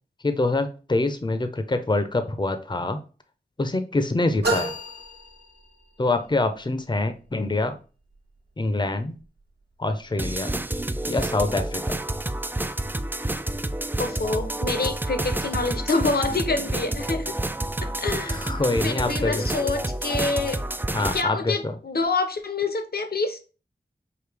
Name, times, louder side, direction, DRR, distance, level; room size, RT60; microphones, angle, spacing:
voice 1, 0.2-3.0 3.6-4.7 6.0-7.8 8.6-9.2 9.8-10.6 11.1-11.9 18.2-19.4 20.9-21.7, left 2 dB, 25° left, 0.6 m, -25 dB
sound 1, 4.4-6.1, right 2 dB, 70° right, 1.2 m, -30 dB
sound 2, 10.2-21.2, right 1 dB, 10° right, 0.3 m, -29 dB
voice 2, 14.0-17.3 17.8-18.4 18.8-20.6 21.1-23.4, left 3 dB, 60° left, 0.8 m, -27 dB
4.9 x 2.8 x 3.3 m
wide cardioid pair, 55°, 18 cm